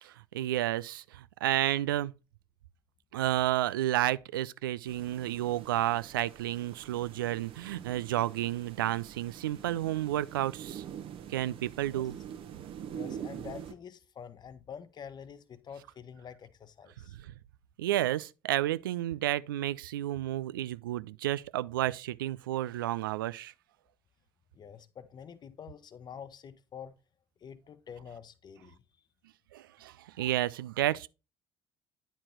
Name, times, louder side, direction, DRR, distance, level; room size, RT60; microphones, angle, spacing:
voice 1, 0.0-2.1 3.1-10.8 11.3-12.2 17.2-17.3 17.8-23.5 29.5-31.1, right 14 dB, 70° right, 0.4 m, -31 dB
sound 1, 4.9-13.7, right 9 dB, 50° right, 1.1 m, -45 dB
voice 2, 12.9-17.2 24.5-26.9 27.4-28.8, left 7 dB, 40° left, 1.0 m, -47 dB
10.0 x 4.4 x 4.4 m
figure-of-eight pair, 50°, 12 cm